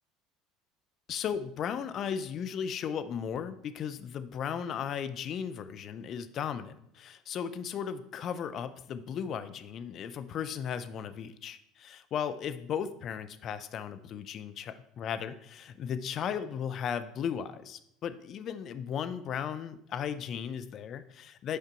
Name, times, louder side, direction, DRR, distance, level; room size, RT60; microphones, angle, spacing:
voice 1, 1.1-21.6, left 8 dB, 50° left, 11 dB, 0.6 m, -36 dB
8.3 x 5.0 x 4.4 m, 0.73 s
hypercardioid pair, 70°, 0 cm